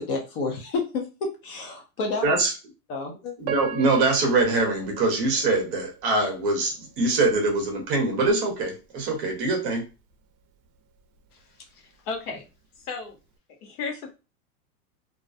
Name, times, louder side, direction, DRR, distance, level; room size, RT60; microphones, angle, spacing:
voice 1, 0.0-2.4 2.9-3.3, left 3 dB, 40° left, 2 dB, 0.5 m, -30 dB
voice 2, 3.4-9.8, right 2 dB, 35° right, 2 dB, 0.8 m, -23 dB
Piano, 3.4-6.5 7.0-7.1 7.8-8.0, right 7 dB, 65° right, 0.5 m, -37 dB
voice 3, 11.7-12.5 12.8-13.2 13.6-14.1, left 4 dB, 75° left, 3 dB, 1.0 m, -34 dB
2.4 x 2.0 x 2.5 m, 0.30 s
supercardioid pair, 155°, 46 cm